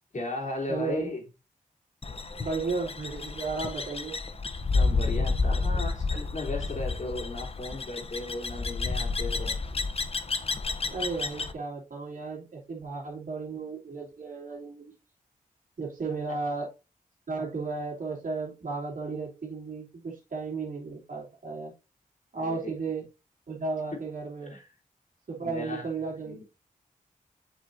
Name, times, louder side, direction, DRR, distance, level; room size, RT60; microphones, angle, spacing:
voice 1, 0.1-1.2 4.7-9.6 22.4-22.7 24.4-24.7 25.4-25.9 26.2-26.4, left 2 dB, 60° left, 3.2 m, -36 dB
voice 2, 0.7-1.2 2.4-4.1 5.5-5.6 10.9-14.9 15.8-16.7 17.3-21.7 22.3-23.0 23.5-24.5 25.3-26.4, right 4 dB, 70° right, 3.1 m, -34 dB
sound 1, 2.0-11.5, left 3 dB, 45° left, 0.8 m, -30 dB
8.1 x 5.5 x 2.7 m
wide cardioid pair, 70°, 14 cm